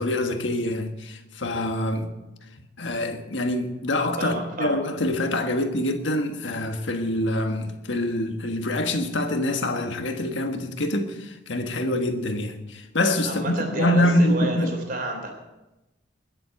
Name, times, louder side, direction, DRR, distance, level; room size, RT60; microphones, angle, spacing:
voice 1, 0.0-2.1 2.8-14.8, left 1 dB, 75° left, 1.5 m, -25 dB
voice 2, 4.2-4.8 13.2-15.3, right 1 dB, 50° right, 3.6 m, -30 dB
21.0 x 7.7 x 5.8 m
head